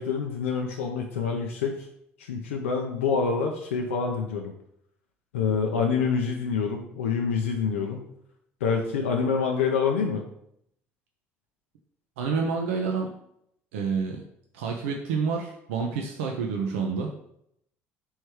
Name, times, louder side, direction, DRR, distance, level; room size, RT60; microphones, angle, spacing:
voice 1, 0.0-1.8 2.2-4.5 5.3-8.0 8.6-10.2, left 5 dB, 85° left, 2 dB, 0.4 m, -26 dB
voice 2, 12.2-13.1 13.7-14.2 14.5-17.1, right 5 dB, 80° right, 1 dB, 0.5 m, -28 dB
3.2 x 3.1 x 4.7 m, 0.74 s
hypercardioid pair, 60°, 7 cm